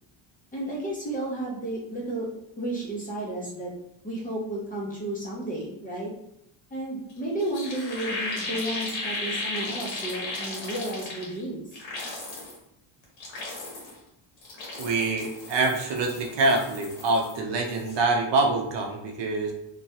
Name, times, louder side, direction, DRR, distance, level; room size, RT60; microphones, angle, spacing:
voice 1, 0.5-2.3 2.6-3.7 4.0-6.1 6.7-11.6, right 1 dB, 15° left, -4 dB, 0.6 m, -32 dB
sound 1, 7.1-7.2 7.4-11.4 11.7-12.6 13.0-14.0 14.4-17.4 17.6-18.0, left 2 dB, 65° left, 1.2 m, -35 dB
voice 2, 14.8-19.5, right 3 dB, 60° right, 2 dB, 0.6 m, -25 dB
3.0 x 2.2 x 2.7 m, 0.78 s
cardioid pair, 145°, 49 cm